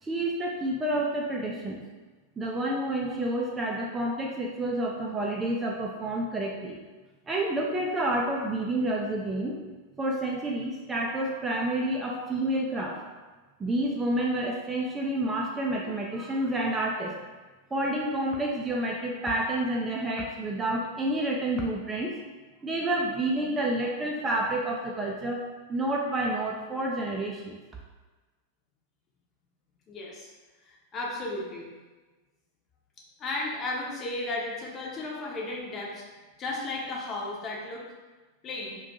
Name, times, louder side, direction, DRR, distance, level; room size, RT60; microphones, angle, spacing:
voice 1, 0.0-1.8 2.4-6.8 7.3-9.5 10.0-13.0 13.6-17.1 17.7-22.1 22.6-25.4 25.7-27.6, right 1 dB, 15° right, -2 dB, 0.4 m, -29 dB
voice 2, 29.9-30.3 30.6-31.7 33.2-36.0 36.4-37.9 38.4-38.8, left 2 dB, 25° left, -3 dB, 0.7 m, -34 dB
2.6 x 2.3 x 4.0 m, 1.2 s
figure-of-eight pair, 90°, 0 cm